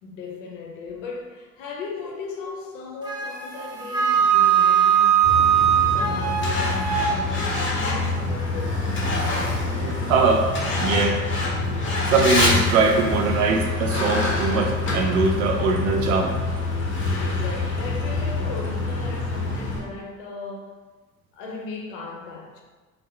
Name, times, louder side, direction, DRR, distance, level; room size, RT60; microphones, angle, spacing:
voice 1, 0.0-5.4 5.9-8.9 17.1-20.8 21.3-22.6, left 3 dB, 65° left, 0.6 m, -37 dB
Wind instrument woodwind instrument, 3.0-7.1, right 9 dB, 10° right, 0.4 m, -20 dB
Truck, 5.2-19.8, left 2 dB, 30° left, 0.8 m, -25 dB
voice 2, 9.8-10.5 10.8-11.2 12.1-16.3, right 4 dB, 70° right, 0.5 m, -21 dB
3.4 x 2.0 x 3.2 m
figure-of-eight pair, 55°, 41 cm